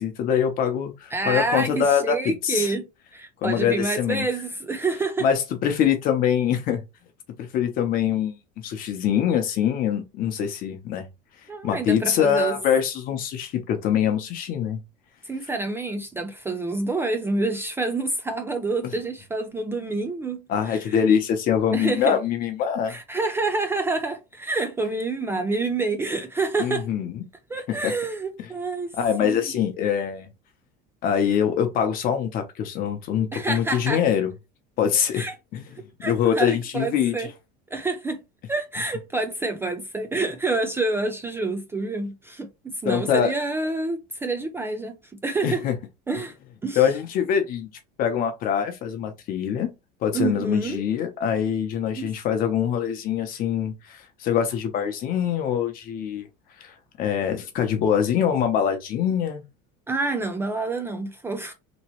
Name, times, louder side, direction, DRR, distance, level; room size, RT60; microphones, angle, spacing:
voice 1, 0.0-2.7 3.4-4.2 5.2-6.8 7.4-11.1 11.6-14.8 20.5-23.0 26.6-27.2 27.7-27.9 29.0-30.3 31.0-34.3 34.8-35.2 35.5-35.7 36.0-37.3 42.8-43.3 45.4-45.7 46.8-47.7 48.0-49.7 50.0-56.3 56.6-59.4, left 8 dB, 45° left, 0.8 m, -24 dB
voice 2, 1.1-5.3 11.5-12.6 15.3-21.0 21.7-22.2 22.9-26.9 27.5-28.9 29.2-29.6 33.3-34.0 34.9-35.3 36.0-37.3 37.7-38.2 38.5-45.0 45.2-45.6 46.1-46.3 46.6-46.9 50.1-50.8 51.9-52.1 59.9-61.5, right 3 dB, 10° right, 0.4 m, -28 dB
3.0 x 2.9 x 3.0 m
supercardioid pair, 135°, 20 cm